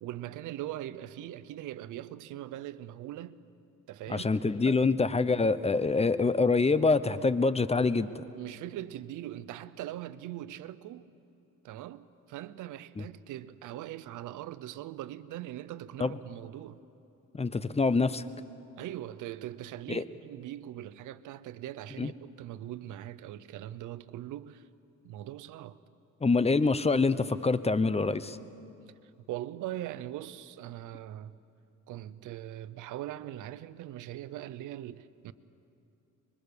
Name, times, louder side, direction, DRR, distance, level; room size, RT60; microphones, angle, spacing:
voice 1, 0.0-3.4 3.9-4.8 8.3-11.1 11.6-16.8 18.8-24.7 25.0-25.8 29.3-31.4 31.9-35.3, right 13 dB, 90° right, 0.8 m, -41 dB
voice 2, 4.1-8.2 13.0-13.1 16.0-16.2 17.3-18.2 19.9-20.0 22.0-22.1 26.2-28.4, left 3 dB, 20° left, 0.8 m, -26 dB
25.5 x 23.0 x 6.9 m
cardioid pair, 90°, 30 cm